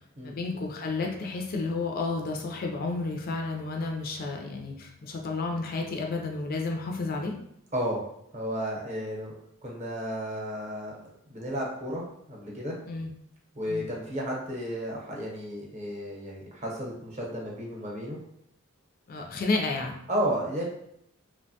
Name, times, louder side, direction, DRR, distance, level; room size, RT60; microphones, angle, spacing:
voice 1, 0.2-7.4 12.9-13.1 13.7-13.8 19.1-19.9, left 3 dB, 45° left, 1 dB, 0.3 m, -31 dB
voice 2, 7.7-8.1 8.3-9.3 9.6-12.8 13.5-18.2 20.1-20.6, equal, 35° right, -3 dB, 0.7 m, -33 dB
2.8 x 2.1 x 2.7 m, 0.73 s
head